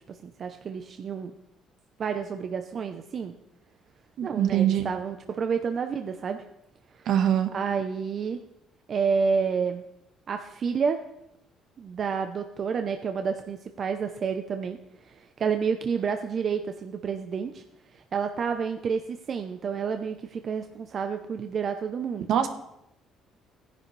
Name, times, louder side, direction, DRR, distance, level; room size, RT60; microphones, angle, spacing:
voice 1, 0.2-1.3 2.0-3.3 4.2-6.4 7.0-7.1 7.5-8.4 8.9-9.8 10.3-11.0 11.8-14.8 15.0-17.6 17.9-22.3, right 6 dB, 45° right, 6 dB, 0.7 m, -29 dB
voice 2, 4.2-4.8 7.0-7.5 22.3-22.5, right 10 dB, 70° right, 7 dB, 1.3 m, -23 dB
16.0 x 10.5 x 3.3 m, 0.84 s
cardioid pair, 100°, 0 cm